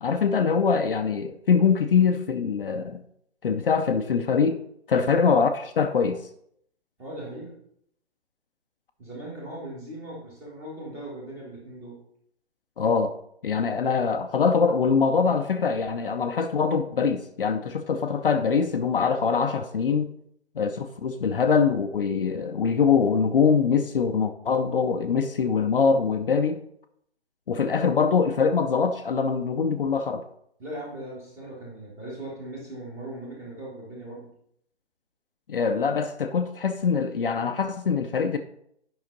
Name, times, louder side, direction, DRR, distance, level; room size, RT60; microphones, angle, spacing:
voice 1, 0.0-3.0 3.4-4.6 4.9-6.2 12.8-13.1 13.4-20.1 20.6-26.6 27.5-30.2 35.5-38.4, left 5 dB, 55° left, 6 dB, 0.7 m, -23 dB
voice 2, 7.0-7.5 9.0-12.0 30.6-34.3, right 1 dB, 10° right, -4 dB, 1.5 m, -39 dB
8.8 x 5.7 x 3.9 m, 0.70 s
hypercardioid pair, 160°, 33 cm